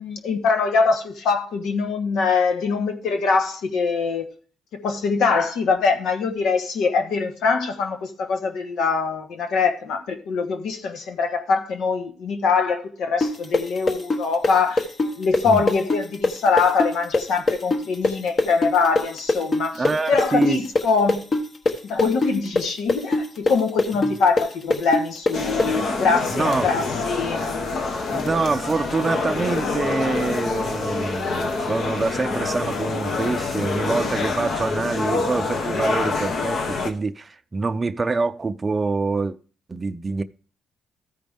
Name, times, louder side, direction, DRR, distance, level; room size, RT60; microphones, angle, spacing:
voice 1, 0.0-4.3 4.7-14.9 15.2-21.2 21.9-28.2, left 4 dB, 80° left, 1.2 m, -23 dB
sound 1, 13.2-20.8 21.1-25.7, left 2 dB, 40° left, 1.1 m, -21 dB
voice 2, 19.8-20.6 24.0-24.1 26.3-26.7 28.1-39.4 39.7-40.2, right 3 dB, 25° right, 0.5 m, -25 dB
sound 2, 25.3-36.9, left 3 dB, 60° left, 1.2 m, -26 dB
13.5 x 5.1 x 3.5 m
cardioid pair, 90°, 0 cm